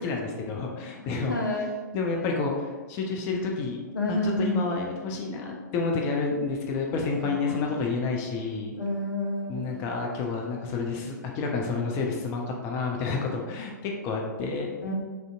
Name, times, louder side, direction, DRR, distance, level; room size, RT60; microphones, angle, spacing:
voice 1, 0.0-1.4 1.9-3.8 4.1-8.7 9.5-14.7, left 4 dB, 25° left, 0 dB, 0.3 m, -29 dB
voice 2, 1.3-1.7 3.9-4.7 7.2-7.8 8.8-9.8 14.8-14.9, left 1 dB, 75° left, 1 dB, 0.5 m, -29 dB
3.2 x 2.5 x 2.4 m, 1.4 s
figure-of-eight pair, 115°, 10 cm